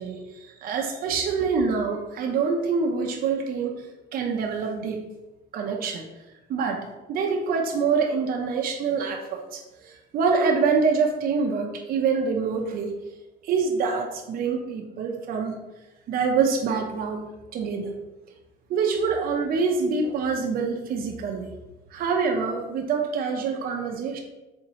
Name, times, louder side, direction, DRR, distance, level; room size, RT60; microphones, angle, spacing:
voice 1, 0.0-3.9 4.1-5.0 5.5-6.0 6.5-13.0 13.4-15.6 16.1-17.3 17.5-17.9 18.7-21.5 21.9-24.2, right 5 dB, 60° right, 2 dB, 0.6 m, -26 dB
4.2 x 3.5 x 2.8 m, 1.1 s
cardioid pair, 110°, 17 cm